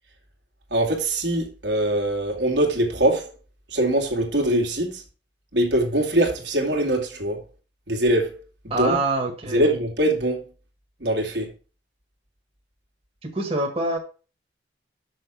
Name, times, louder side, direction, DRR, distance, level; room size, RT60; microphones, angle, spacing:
voice 1, 0.7-3.4 3.7-5.0 5.5-7.4 7.9-8.5 8.8-9.0 9.5-10.4 11.0-11.5, right 1 dB, 70° right, 2.3 m, -22 dB
voice 2, 8.7-9.7 13.2-14.0, right 2 dB, 30° right, 1.7 m, -25 dB
6.4 x 6.3 x 6.0 m
head